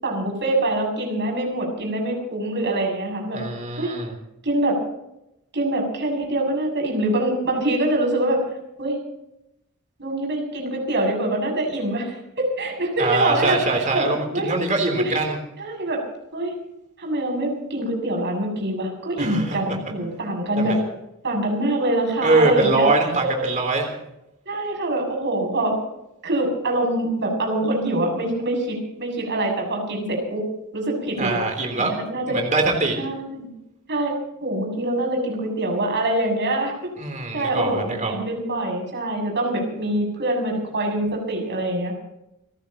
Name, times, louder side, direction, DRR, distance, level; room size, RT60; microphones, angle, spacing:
voice 1, 0.0-3.4 3.8-3.9 4.4-4.8 5.5-8.4 8.8-9.0 10.0-13.6 13.9-14.1 14.3-14.5 15.0-15.1 15.6-16.0 16.3-16.5 17.0-20.8 21.2-22.9 23.2-23.4 24.5-25.7 26.2-30.4 30.7-31.4 31.7-32.4 33.0-33.5 33.9-34.1 34.4-36.9 37.3-41.9, right 1 dB, 55° right, 1 dB, 7.3 m, -24 dB
voice 2, 3.3-4.1 13.0-15.4 19.2-19.8 20.6-20.7 22.2-23.9 31.2-32.0 32.3-33.0 37.0-38.1, right 3 dB, 35° right, 2 dB, 3.5 m, -23 dB
30.0 x 15.0 x 3.0 m, 0.86 s
head